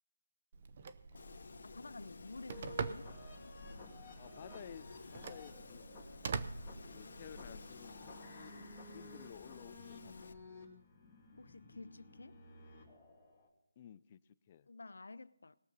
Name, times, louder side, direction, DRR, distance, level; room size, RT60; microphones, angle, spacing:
Telephone, 0.5-7.5, right 5 dB, 35° right, 0.6 m, -45 dB
Wind, 1.1-10.3, left 4 dB, 55° left, 1.1 m, -54 dB
voice 1, 1.1-1.9 4.2-5.8 6.3-6.4 6.9-8.0 8.5-10.1 13.8-14.2 14.5-14.7, left 9 dB, 25° left, 0.3 m, -55 dB
voice 2, 1.7-3.1 11.4-12.4 14.7-15.6, left 3 dB, 80° left, 0.6 m, -51 dB
sound 1, 2.5-13.5, left 2 dB, 10° left, 2.4 m, -55 dB
20.5 x 7.1 x 4.0 m
hypercardioid pair, 170°, 0 cm